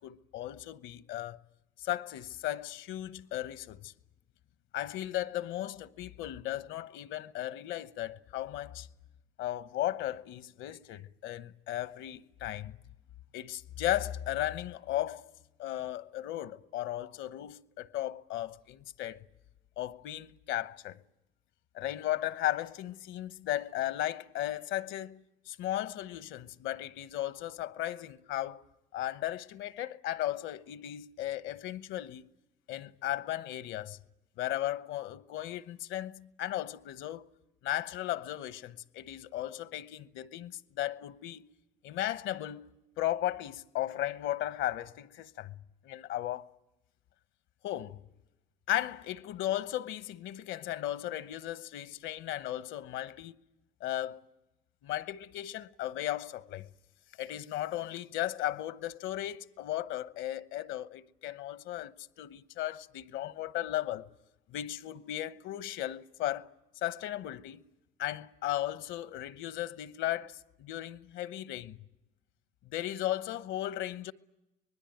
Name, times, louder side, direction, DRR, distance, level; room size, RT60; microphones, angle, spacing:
voice 1, 0.0-1.4 1.8-3.9 4.7-8.9 9.4-12.8 13.3-15.3 15.6-19.2 19.8-21.0 21.7-28.6 28.9-32.3 32.7-34.0 34.4-37.2 37.6-41.5 41.8-45.6 45.8-46.5 47.6-48.0 48.7-53.4 53.8-54.2 54.8-56.7 57.2-64.1 64.5-66.5 66.7-67.6 68.0-71.8 72.6-74.1, left 13 dB, 65° left, 1.0 m, -36 dB
24.5 x 20.5 x 9.2 m
supercardioid pair, 85°, 21 cm